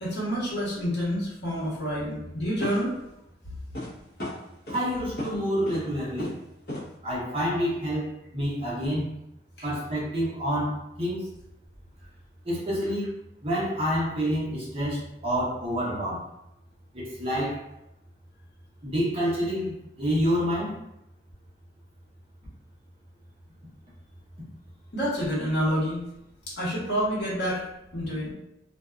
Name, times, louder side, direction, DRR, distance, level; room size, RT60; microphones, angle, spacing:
voice 1, 0.0-2.9 24.9-26.0 26.6-27.6 27.9-28.3, equal, 70° left, -7 dB, 1.1 m, -28 dB
sound 1, 1.5-1.6 2.6-3.0 3.7-3.9 4.2-4.8 5.2-5.3 5.7-5.9 6.2-6.4 6.7-6.9, left 1 dB, 55° left, 0.8 m, -35 dB
voice 2, 4.7-6.4 7.0-9.0 9.6-11.3 12.4-13.1 13.4-16.2 16.9-17.6 18.8-20.7, equal, 35° right, -7 dB, 0.8 m, -28 dB
2.6 x 2.2 x 2.4 m, 0.84 s
head